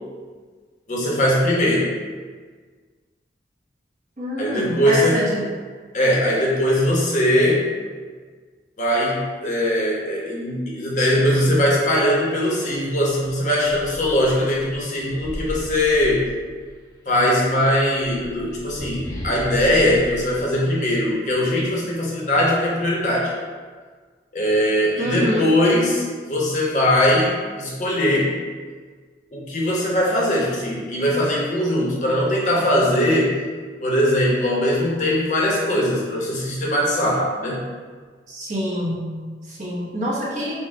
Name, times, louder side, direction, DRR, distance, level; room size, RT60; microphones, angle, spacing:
voice 1, 0.9-1.9 4.4-5.2 5.9-7.7 8.8-16.2 17.1-23.3 24.3-28.3 29.3-33.4 33.8-37.6, left 1 dB, 45° left, -4 dB, 0.9 m, -20 dB
voice 2, 4.2-5.5 25.0-25.5 38.3-40.6, equal, 45° right, -5 dB, 0.9 m, -26 dB
sound 1, 13.6-16.9 17.8-21.4, equal, 20° left, 0.5 m, -36 dB
4.3 x 2.2 x 4.4 m, 1.5 s
head